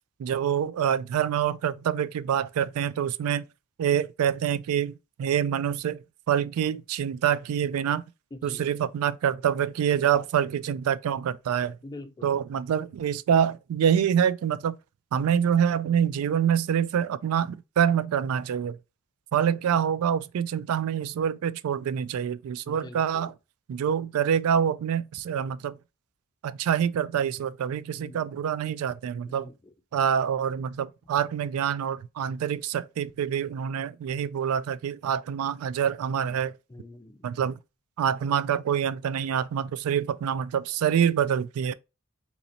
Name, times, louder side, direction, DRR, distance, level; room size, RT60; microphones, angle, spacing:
voice 1, 0.2-3.5 3.8-4.9 5.2-8.0 8.4-11.8 12.2-14.8 15.1-18.8 19.3-23.3 23.7-25.8 26.4-29.5 29.9-36.6 37.2-37.6 38.0-41.7, right 8 dB, 80° right, 0.3 m, -26 dB
voice 2, 8.3-8.7 11.8-12.4 22.7-23.3 27.9-28.3 29.3-29.7 36.7-37.3, left 2 dB, 20° left, 0.4 m, -44 dB
3.0 x 2.8 x 3.9 m
head